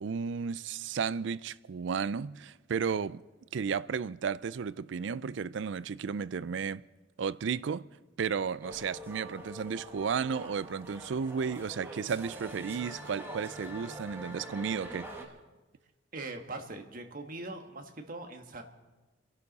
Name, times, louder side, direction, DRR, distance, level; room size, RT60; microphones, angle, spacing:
voice 1, 0.0-3.2 3.5-6.8 7.2-7.9 8.2-15.1, right 6 dB, 65° right, 0.4 m, -33 dB
sound 1, 8.6-15.3, right 1 dB, 10° right, 1.7 m, -44 dB
voice 2, 16.1-18.6, right 2 dB, 45° right, 1.5 m, -41 dB
29.5 x 11.5 x 4.1 m
head